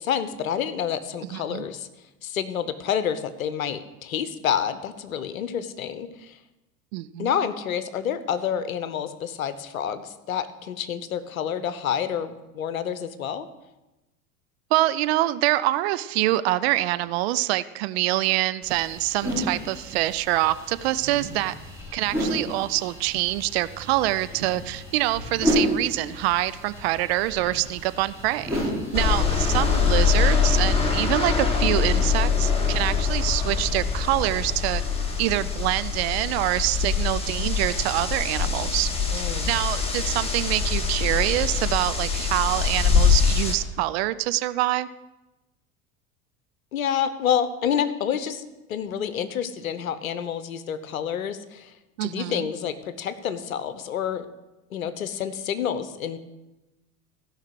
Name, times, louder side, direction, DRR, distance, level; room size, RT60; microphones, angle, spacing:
voice 1, 0.0-1.9 2.2-6.4 7.2-13.5 29.1-29.3 39.1-39.5 46.7-48.4 48.7-51.7 52.0-54.3 54.7-56.2, left 8 dB, 70° left, 13 dB, 0.9 m, -28 dB
voice 2, 1.3-1.6 6.9-7.3 14.7-21.5 21.9-28.6 28.9-34.8 35.2-38.9 39.2-44.9 52.0-52.5, right 17 dB, 45° right, 14 dB, 0.5 m, -25 dB
sound 1, 18.6-30.2, equal, 5° right, 5.2 m, -32 dB
sound 2, 28.9-43.5, left 6 dB, 15° left, 2.0 m, -23 dB
15.5 x 5.7 x 6.3 m, 1.0 s
figure-of-eight pair, 75°, 43 cm